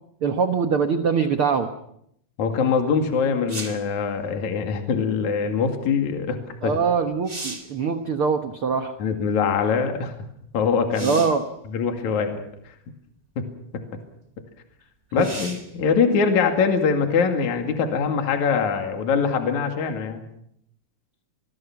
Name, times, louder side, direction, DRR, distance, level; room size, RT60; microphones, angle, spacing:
voice 1, 0.2-1.7 6.6-9.0 11.0-11.4 15.2-15.4, right 5 dB, 90° right, 7 dB, 1.2 m, -23 dB
voice 2, 2.4-6.8 9.0-10.1 10.5-11.2 11.7-12.4 13.4-13.5 15.1-20.2, left 5 dB, 50° left, 5 dB, 3.4 m, -23 dB
sound 1, 3.5-3.9 6.6-6.7 7.1-7.8 10.9-11.5 12.5-12.6 15.2-15.7 19.3-19.4, right 2 dB, 15° right, 1.4 m, -36 dB
26.0 x 22.0 x 6.0 m, 0.72 s
omnidirectional pair, 4.6 m